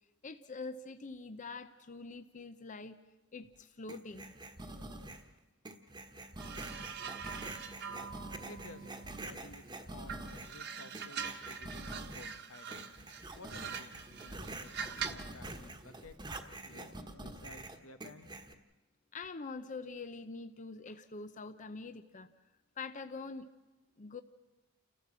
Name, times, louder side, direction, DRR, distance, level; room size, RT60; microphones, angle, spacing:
voice 1, 0.2-3.0 3.3-4.3 19.1-22.3 22.8-23.5 24.0-24.2, left 4 dB, 35° left, 11 dB, 0.7 m, -44 dB
sound 1, 3.9-5.3 5.7-10.6 10.9-12.4 12.7-18.5, right 2 dB, 20° right, 1.3 m, -46 dB
sound 2, 6.4-9.6 10.1-15.3 16.3-16.5, right 6 dB, 55° right, 1.4 m, -44 dB
voice 2, 8.5-8.9 9.2-12.9 13.4-16.2 16.6-18.3, left 2 dB, 85° left, 9 dB, 1.3 m, -54 dB
29.0 x 14.5 x 7.5 m, 1.2 s
head